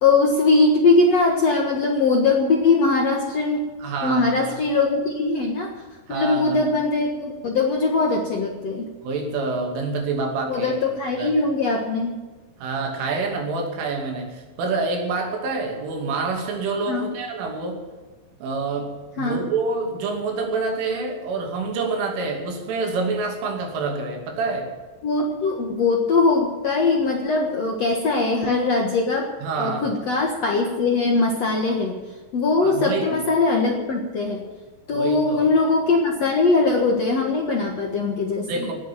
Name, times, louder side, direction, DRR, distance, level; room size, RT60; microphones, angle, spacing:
voice 1, 0.0-3.7 4.0-5.7 6.1-8.9 10.5-12.1 16.9-17.1 19.2-19.4 25.0-31.9 32.3-34.4 34.9-38.7, left 3 dB, 80° left, 1 dB, 1.4 m, -21 dB
voice 2, 3.8-4.6 6.1-6.6 9.0-10.7 11.2-11.3 12.6-17.9 18.4-24.7 29.4-29.9 32.6-33.2 34.9-35.5 38.5-38.7, right 3 dB, 85° right, 1 dB, 5.2 m, -27 dB
18.0 x 7.9 x 9.0 m, 1.3 s
omnidirectional pair, 5.5 m